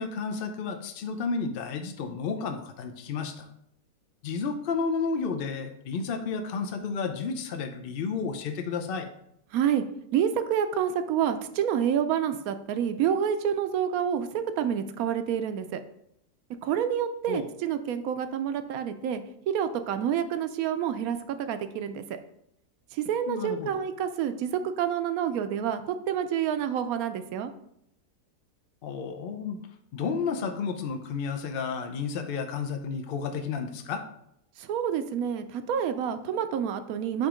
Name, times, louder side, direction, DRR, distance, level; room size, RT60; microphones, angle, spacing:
voice 1, 0.0-3.4 4.2-9.1 17.3-17.5 23.3-23.7 28.8-29.6 29.9-34.0, left 5 dB, 65° left, 5 dB, 0.5 m, -31 dB
voice 2, 9.5-9.8 10.1-15.8 16.6-22.0 22.9-27.5 34.6-37.3, right 8 dB, 70° right, 9 dB, 1.0 m, -28 dB
8.0 x 3.0 x 4.9 m, 0.74 s
omnidirectional pair, 1.7 m